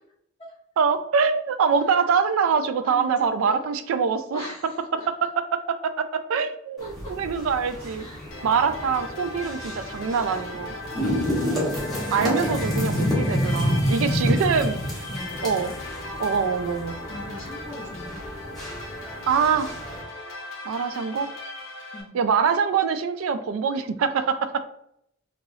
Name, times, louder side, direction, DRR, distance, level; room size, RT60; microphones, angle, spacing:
voice 1, 0.8-4.5 5.1-8.1 8.4-10.7 12.1-15.0 15.4-15.7 16.2-17.0 19.2-19.7 20.6-21.3 22.1-24.6, right 6 dB, 70° right, 11 dB, 0.3 m, -24 dB
voice 2, 2.8-3.7 4.3-5.1 6.8-7.1 8.0-8.4 10.9-11.3 14.1-14.4 15.1-15.4 17.1-18.2 21.9-22.2, left 1 dB, 25° left, -7 dB, 0.7 m, -40 dB
sound 1, 6.8-20.0, equal, ahead, 1.0 m, -29 dB
sound 2, 8.3-22.0, left 2 dB, 70° left, 0.7 m, -38 dB
3.0 x 2.9 x 2.7 m, 0.73 s
head